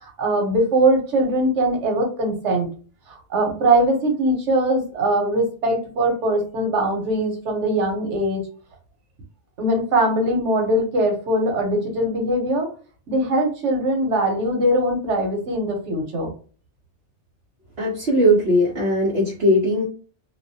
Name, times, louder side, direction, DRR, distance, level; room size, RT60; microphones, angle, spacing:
voice 1, 0.0-2.7 3.1-8.5 9.6-12.7 13.1-16.3, right 1 dB, 85° right, 2 dB, 1.2 m, -21 dB
voice 2, 17.8-19.8, equal, 60° right, -5 dB, 0.9 m, -19 dB
2.6 x 2.1 x 2.6 m, 0.39 s
omnidirectional pair, 1.2 m